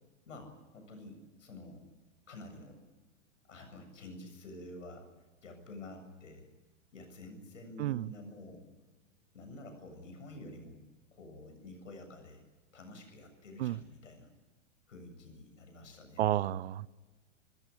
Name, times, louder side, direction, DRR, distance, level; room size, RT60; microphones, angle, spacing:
voice 1, 0.3-1.8 2.3-2.8 3.4-5.1 5.4-6.5 6.9-8.7 9.3-10.8 11.1-12.4 12.7-14.3 14.9-16.2, left 1 dB, 75° left, 7.7 m, -49 dB
voice 2, 16.2-16.9, right 14 dB, 55° right, 0.8 m, -31 dB
28.0 x 16.0 x 8.5 m
hypercardioid pair, 110°, 38 cm